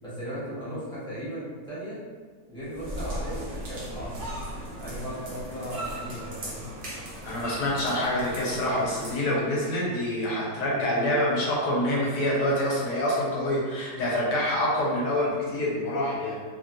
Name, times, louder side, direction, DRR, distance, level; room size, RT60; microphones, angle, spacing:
voice 1, 0.0-2.0 2.5-4.3 4.8-6.7, equal, 5° left, -12 dB, 0.6 m, -37 dB
sound 1, 2.6-9.1, right 1 dB, 80° right, 0.4 m, -37 dB
voice 2, 7.2-16.4, left 1 dB, 70° left, -4 dB, 1.4 m, -26 dB
3.3 x 2.3 x 2.5 m, 1.5 s
omnidirectional pair, 1.9 m